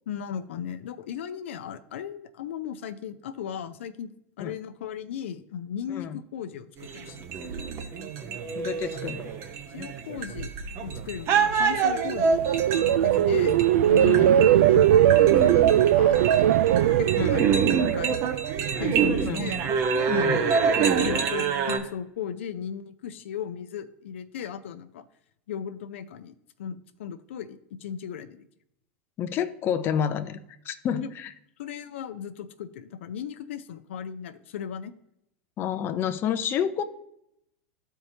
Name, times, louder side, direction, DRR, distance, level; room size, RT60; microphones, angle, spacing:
voice 1, 0.1-4.1 4.4-7.2 9.7-10.5 10.8-12.4 12.8-13.6 13.9-16.5 17.0-17.7 17.9-18.2 18.8-19.6 20.1-20.3 21.0-25.0 25.5-26.3 26.6-28.5 30.9-31.1 31.6-34.9, left 8 dB, 80° left, 8 dB, 0.5 m, -36 dB
voice 2, 5.9-6.2 8.5-9.2 13.4-13.6 14.0-14.3 17.2-17.4 19.2-19.5 20.1-20.4 29.2-31.3 35.6-36.8, left 8 dB, 35° left, 8 dB, 0.5 m, -29 dB
sound 1, 6.8-21.8, right 6 dB, 45° right, 0.9 m, -27 dB
sound 2, 11.8-19.0 19.4-19.7, right 11 dB, 75° right, 0.3 m, -20 dB
13.0 x 4.5 x 2.8 m, 0.78 s
hypercardioid pair, 115°, 7 cm